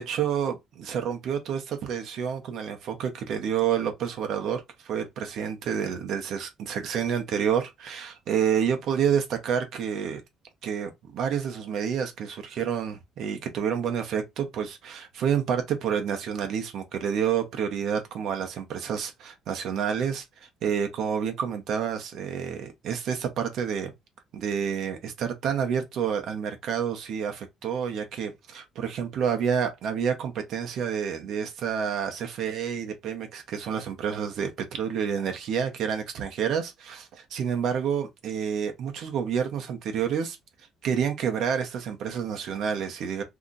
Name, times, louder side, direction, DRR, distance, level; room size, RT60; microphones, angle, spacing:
voice 1, 0.0-10.2 10.6-23.9 24.3-40.4 40.8-43.2, right 8 dB, 65° right, 0.8 m, -29 dB
2.8 x 2.4 x 3.8 m
cardioid pair, 120°, 0 cm